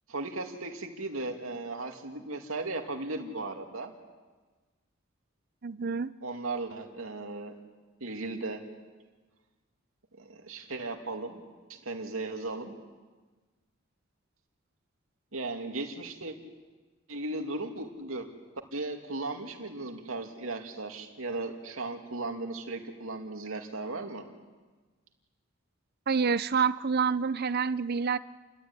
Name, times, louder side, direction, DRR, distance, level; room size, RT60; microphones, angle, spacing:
voice 1, 0.1-3.9 6.2-7.5 8.0-8.6 10.2-11.4 11.7-12.7 15.3-16.4 17.1-18.3 18.7-24.2, right 2 dB, 85° right, 3 dB, 2.6 m, -36 dB
voice 2, 5.6-6.1 26.1-28.2, right 5 dB, 50° right, 16 dB, 0.7 m, -27 dB
29.5 x 13.0 x 9.8 m, 1.3 s
head